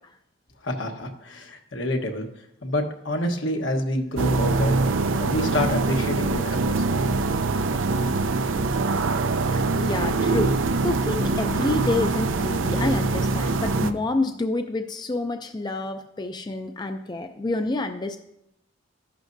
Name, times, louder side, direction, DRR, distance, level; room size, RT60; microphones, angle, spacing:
voice 1, 0.6-2.3 2.6-4.8 5.2-7.1, left 1 dB, 75° left, 3 dB, 1.3 m, -28 dB
sound 1, 4.2-13.9, right 3 dB, 85° right, 0.6 m, -23 dB
voice 2, 9.5-18.2, left 2 dB, 20° left, 7 dB, 0.4 m, -28 dB
13.5 x 11.0 x 2.7 m, 0.81 s
head